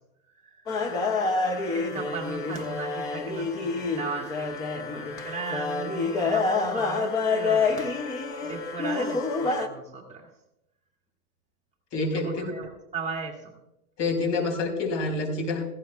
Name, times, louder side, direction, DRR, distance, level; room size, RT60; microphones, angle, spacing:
voice 1, 0.3-0.8 1.7-7.9 8.4-10.3 12.1-13.5 14.4-14.5, right 4 dB, 15° right, 0 dB, 2.1 m, -37 dB
sound 1, 0.7-9.7, left 4 dB, 10° left, 0.3 m, -28 dB
voice 2, 11.9-12.5 14.0-15.7, left 3 dB, 50° left, 2 dB, 4.5 m, -27 dB
17.0 x 15.5 x 2.2 m, 0.86 s
hypercardioid pair, 130°, 46 cm